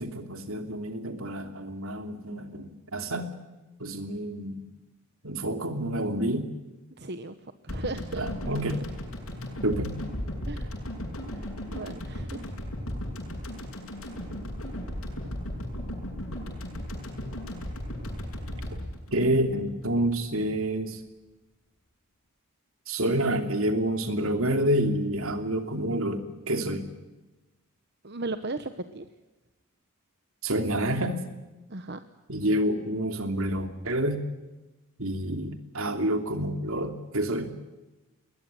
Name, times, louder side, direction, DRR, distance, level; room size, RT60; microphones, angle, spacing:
voice 1, 0.0-3.3 3.8-4.6 5.2-6.5 8.2-8.7 9.6-10.0 18.7-18.8 19.1-21.0 22.9-26.8 30.4-31.2 32.3-34.2 35.0-37.5, right 1 dB, 70° right, 7 dB, 2.9 m, -28 dB
voice 2, 7.0-7.4 7.6-8.3 10.4-10.7 11.4-11.5 11.7-12.5 28.0-29.1 31.7-32.0, right 2 dB, 50° right, 10 dB, 1.1 m, -36 dB
sound 1, 7.7-20.0 20.3-20.4, left 1 dB, 70° left, 7.3 m, -36 dB
21.0 x 20.5 x 9.2 m, 1.1 s
head